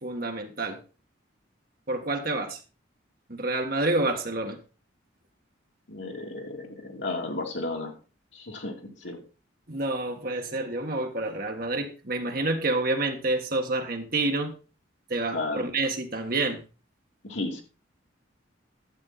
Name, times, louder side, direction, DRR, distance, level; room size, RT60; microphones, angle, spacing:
voice 1, 0.0-0.8 1.9-2.6 3.3-4.6 9.7-14.5 15.1-16.6, right 2 dB, 45° right, 4 dB, 1.6 m, -28 dB
voice 2, 5.9-8.0 8.3-9.2 15.3-15.7 17.2-17.6, left 2 dB, 65° left, 2 dB, 2.7 m, -33 dB
12.0 x 8.4 x 4.1 m, 0.34 s
head